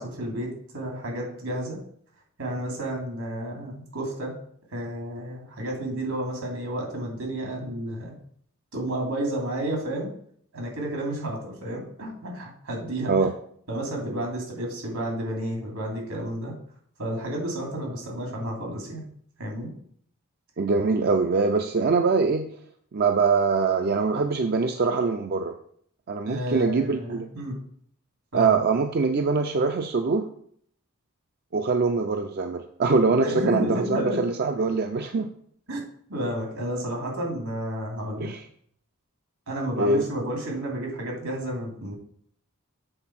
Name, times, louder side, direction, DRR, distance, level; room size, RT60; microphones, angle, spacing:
voice 1, 0.0-1.8 2.4-4.3 4.7-8.1 8.7-10.1 10.5-13.1 13.7-16.5 17.0-19.1 19.4-19.7 26.2-27.6 28.3-28.5 33.2-34.2 35.7-35.8 36.1-38.3 39.5-42.0, right 1 dB, 80° right, 0 dB, 2.8 m, -31 dB
voice 2, 20.6-22.5 22.9-25.5 26.1-27.3 28.3-30.3 31.5-35.3 38.2-38.4 39.8-40.0, right 4 dB, 45° right, 6 dB, 0.4 m, -23 dB
7.9 x 4.0 x 5.8 m, 0.63 s
head